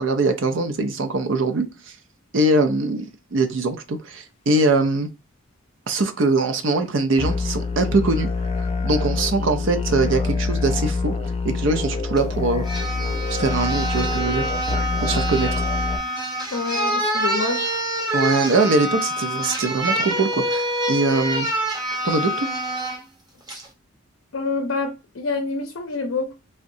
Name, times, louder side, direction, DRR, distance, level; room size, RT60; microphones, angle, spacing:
voice 1, 0.0-2.0 2.3-3.0 3.3-5.1 5.9-8.3 8.8-11.1 11.4-12.6 13.3-14.5 15.0-15.5 18.1-21.5 22.0-22.5, right 2 dB, 65° right, 0.5 m, -22 dB
sound 1, 7.2-16.0, left 4 dB, 30° left, 0.3 m, -25 dB
sound 2, 12.2-12.3 12.6-23.0 23.5-23.7, right 1 dB, 20° right, 0.7 m, -26 dB
voice 2, 16.5-17.6 24.3-26.3, left 3 dB, 75° left, 0.6 m, -27 dB
3.7 x 2.1 x 2.6 m
head